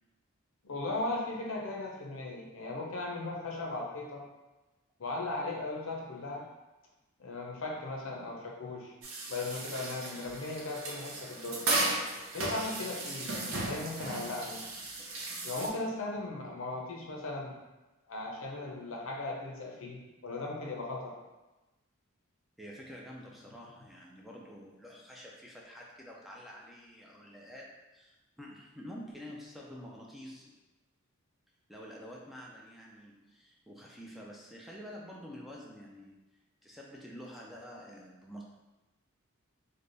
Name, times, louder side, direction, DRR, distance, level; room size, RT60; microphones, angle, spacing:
voice 1, 0.6-4.2 5.0-6.4 7.2-8.9 9.3-11.6 12.3-14.7 15.4-17.6 18.1-21.2, left 2 dB, 70° left, -1 dB, 0.7 m, -37 dB
sound 1, 9.0-15.7, right 2 dB, 70° right, 0.7 m, -35 dB
voice 2, 22.6-30.6 31.7-36.2 36.6-38.4, equal, ahead, -3 dB, 0.3 m, -48 dB
3.4 x 2.1 x 3.8 m, 1.1 s
head